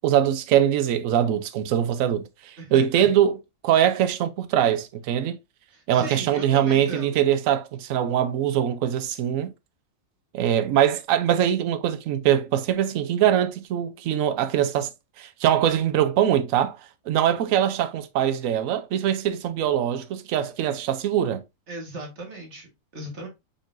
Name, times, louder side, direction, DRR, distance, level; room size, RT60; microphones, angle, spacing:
voice 1, 0.0-3.4 3.6-5.4 5.9-9.5 10.3-14.9 15.2-16.8 17.1-21.4, right 10 dB, 70° right, 1.0 m, -22 dB
voice 2, 2.6-3.1 5.7-7.2 21.7-23.3, right 1 dB, 50° right, 1.7 m, -37 dB
5.5 x 3.8 x 2.5 m
omnidirectional pair, 1.6 m